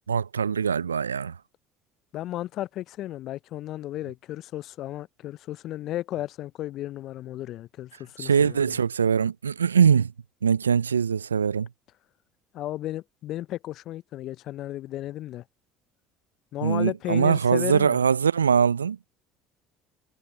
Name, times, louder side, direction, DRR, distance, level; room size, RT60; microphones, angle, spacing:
voice 1, 0.1-1.4 8.2-10.1 10.4-11.7 16.6-19.0, right 7 dB, 85° right, 0.4 m, -22 dB
voice 2, 2.1-8.7 12.5-15.4 16.5-18.0, left 14 dB, 55° left, 0.6 m, -34 dB
figure-of-eight pair, 60°, 0 cm